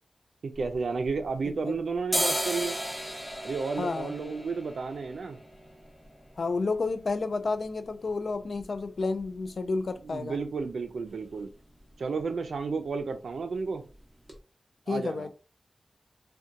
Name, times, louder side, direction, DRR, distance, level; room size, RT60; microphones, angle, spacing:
voice 1, 0.4-2.8 3.4-5.4 10.0-11.5 12.0-13.8 14.9-15.3, right 4 dB, 90° right, 7 dB, 0.4 m, -32 dB
sound 1, 0.5-1.6 1.9-9.7 10.0-10.1 10.3-10.9 11.2-11.4 11.7-11.9 12.2-12.9 13.3-13.4 13.9-14.0 14.3-14.4, equal, 5° right, 0.7 m, -36 dB
voice 2, 3.8-4.1 6.4-10.4 14.9-15.3, left 3 dB, 70° left, 9 dB, 0.3 m, -30 dB
2.7 x 2.2 x 2.5 m, 0.34 s
wide cardioid pair, 85°, 0 cm